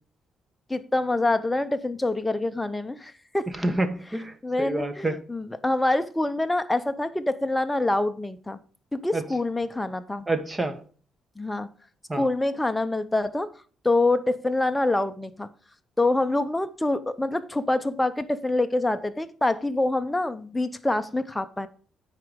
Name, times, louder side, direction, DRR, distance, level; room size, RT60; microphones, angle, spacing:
voice 1, 0.7-3.5 4.4-8.6 8.9-10.3 11.4-11.7 12.1-13.5 13.8-15.5 16.0-21.7, left 2 dB, 10° left, 0.8 m, -26 dB
voice 2, 3.6-5.1 9.1-9.2 10.3-10.8 12.1-12.3, right 2 dB, 20° right, 1.2 m, -28 dB
9.2 x 4.8 x 5.2 m
cardioid pair, 90°, 0 cm